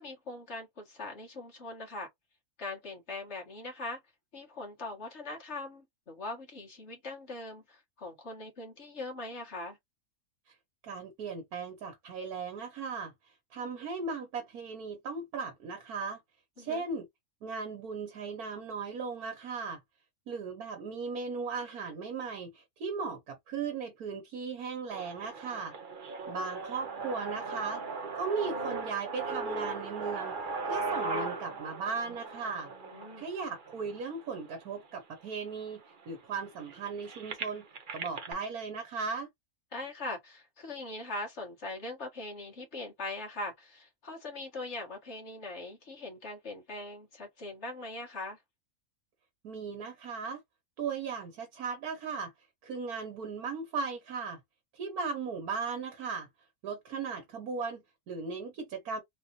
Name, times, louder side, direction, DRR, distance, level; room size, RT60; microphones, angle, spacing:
voice 1, 0.0-2.1 2.6-4.0 4.3-9.8 16.6-16.8 32.9-33.3 39.7-48.4, left 2 dB, 50° left, 1.7 m, -41 dB
voice 2, 10.8-16.2 16.6-17.1 17.4-19.8 20.3-25.7 26.3-27.8 28.1-30.4 30.7-32.7 33.2-35.8 36.1-37.6 37.9-39.3 49.4-50.4 50.8-52.3 52.6-54.4 54.7-56.3 56.6-59.0, right 5 dB, 90° right, 1.6 m, -37 dB
sound 1, 24.9-34.9 35.5-35.6 35.9-38.3, right 3 dB, 45° right, 0.8 m, -38 dB
4.0 x 2.5 x 2.9 m
omnidirectional pair, 1.5 m